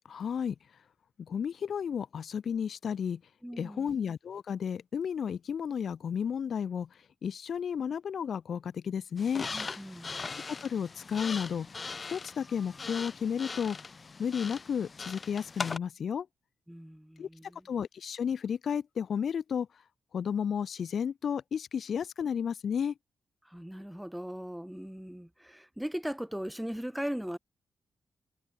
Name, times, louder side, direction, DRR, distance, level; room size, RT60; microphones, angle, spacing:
voice 1, 0.1-0.6 1.2-3.2 3.6-6.9 7.2-9.5 10.3-11.7 12.1-13.8 14.2-16.3 17.2-17.3 17.6-19.7 20.1-22.9, left 7 dB, 65° left, 0.5 m, -32 dB
voice 2, 3.4-3.9 9.5-10.2 16.7-17.6 23.5-27.4, equal, 5° right, 0.4 m, -39 dB
sound 1, 9.2-15.8, left 4 dB, 40° left, 0.9 m, -40 dB
cardioid pair, 75°, 0 cm